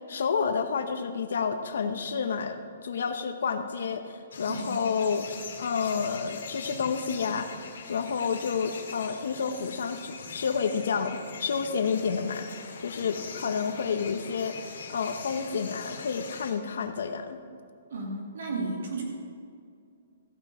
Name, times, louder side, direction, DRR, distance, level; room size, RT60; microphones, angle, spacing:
voice 1, 0.1-7.6 7.9-14.6 14.9-17.4, left 6 dB, 65° left, 8 dB, 0.9 m, -30 dB
sound 1, 4.3-16.5, left 5 dB, 80° left, 2.2 m, -42 dB
voice 2, 4.5-4.8 17.9-19.0, right 2 dB, 60° right, -1 dB, 2.4 m, -33 dB
15.0 x 6.0 x 6.9 m, 2.3 s
hypercardioid pair, 180°, 0 cm